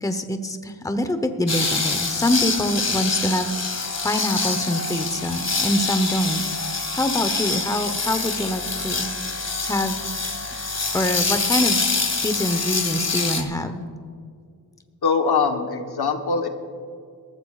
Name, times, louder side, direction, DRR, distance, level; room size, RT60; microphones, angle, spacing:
voice 1, 0.0-6.4 6.9-10.0 10.9-11.8 12.2-13.9, left 1 dB, 10° left, 8 dB, 1.0 m, -25 dB
sound 1, 1.5-13.4, left 4 dB, 40° left, 1.7 m, -25 dB
voice 2, 15.0-16.5, left 5 dB, 70° left, 5 dB, 1.3 m, -22 dB
21.0 x 14.0 x 2.5 m, 2.2 s
cardioid pair, 60°, 40 cm